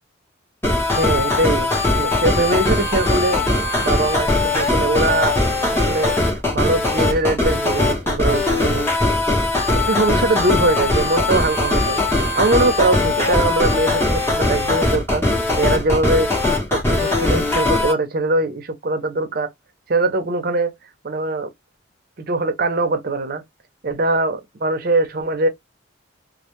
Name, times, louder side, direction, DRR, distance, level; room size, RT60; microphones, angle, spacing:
sound 1, 0.6-17.9, left 2 dB, 10° left, 0.7 m, -20 dB
voice 1, 1.0-3.4 3.8-5.4 5.7-6.2 6.5-8.9 9.7-15.2 15.5-16.3 16.7-19.5 19.9-20.7 21.0-21.5 22.2-23.4 23.8-25.5, right 2 dB, 45° right, 0.6 m, -21 dB
2.1 x 2.1 x 2.9 m
head